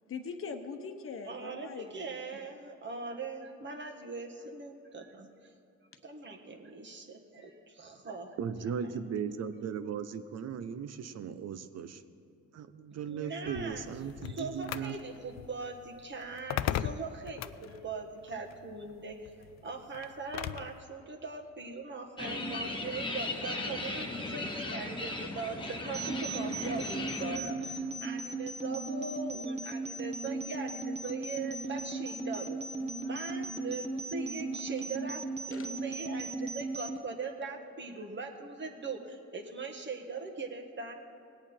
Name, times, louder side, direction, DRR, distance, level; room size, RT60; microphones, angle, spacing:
voice 1, 0.1-2.1 35.5-35.7, left 5 dB, 45° left, 6 dB, 1.1 m, -41 dB
voice 2, 1.2-5.3 6.0-8.4 13.1-13.9 14.2-32.6 33.0-35.2 35.5-40.9, right 4 dB, 40° right, 3 dB, 1.5 m, -41 dB
voice 3, 8.4-12.0 12.5-15.0, right 7 dB, 60° right, 11 dB, 0.7 m, -37 dB
sound 1, 13.5-20.8, left 11 dB, 65° left, 0.4 m, -39 dB
sound 2, 22.2-27.4, left 2 dB, 15° left, 1.3 m, -37 dB
sound 3, 25.9-37.0, right 3 dB, 20° right, 1.4 m, -37 dB
19.0 x 8.6 x 4.4 m, 2.7 s
cardioid pair, 90°, 30 cm